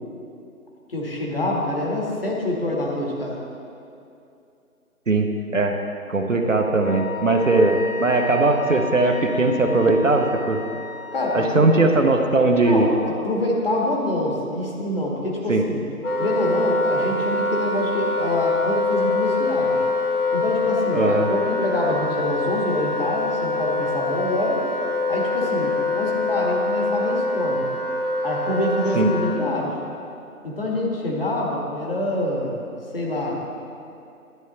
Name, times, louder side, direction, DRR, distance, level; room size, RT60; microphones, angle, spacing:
voice 1, 0.9-3.4 11.1-11.7 12.6-15.8 16.2-19.8 20.3-24.6 25.1-27.6 28.2-29.8 30.4-32.6 32.9-33.4, left 1 dB, 40° left, -3 dB, 1.7 m, -26 dB
voice 2, 5.1-5.8 6.1-10.6 11.3-12.9 15.5-15.6 20.9-21.3 28.9-29.1, right 2 dB, 60° right, 4 dB, 0.9 m, -19 dB
Wind instrument woodwind instrument, 6.8-11.7, left 4 dB, 60° left, 1.6 m, -35 dB
Wind instrument woodwind instrument 2, 16.0-29.4, left 2 dB, 85° left, 1.5 m, -24 dB
11.0 x 8.0 x 4.0 m, 2.6 s
figure-of-eight pair, 160°, 44 cm